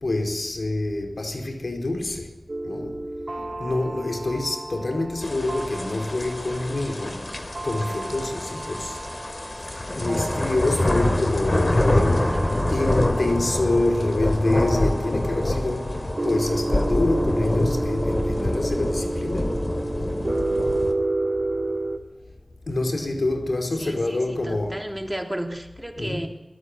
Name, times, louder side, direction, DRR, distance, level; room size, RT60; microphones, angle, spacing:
voice 1, 0.0-2.3 2.6-3.0 3.4-7.3 7.6-9.0 9.9-12.4 12.7-20.2 22.7-24.8 26.0-26.3, left 2 dB, 80° left, 4.7 m, -26 dB
sound 1, 2.5-22.0, right 2 dB, 50° right, 3.5 m, -31 dB
sound 2, 5.2-20.9, left 1 dB, 45° left, 3.5 m, -26 dB
voice 2, 11.8-12.7 23.0-23.2 23.8-26.3, right 1 dB, 10° right, 3.9 m, -34 dB
22.5 x 20.5 x 9.9 m
wide cardioid pair, 65°, 0 cm